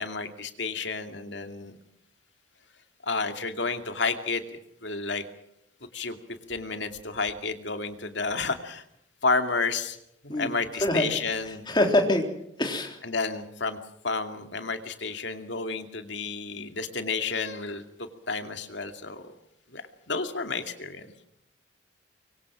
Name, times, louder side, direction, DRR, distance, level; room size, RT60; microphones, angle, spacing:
voice 1, 0.0-1.8 3.0-4.4 4.8-5.2 5.9-6.2 6.5-8.8 9.2-10.0 10.2-11.7 13.0-13.8 14.0-19.3 19.7-21.1, left 4 dB, 65° left, 7 dB, 2.4 m, -31 dB
voice 2, 11.7-12.2 12.6-13.0, left 1 dB, 25° left, 3 dB, 3.7 m, -24 dB
25.0 x 23.0 x 6.2 m, 0.77 s
head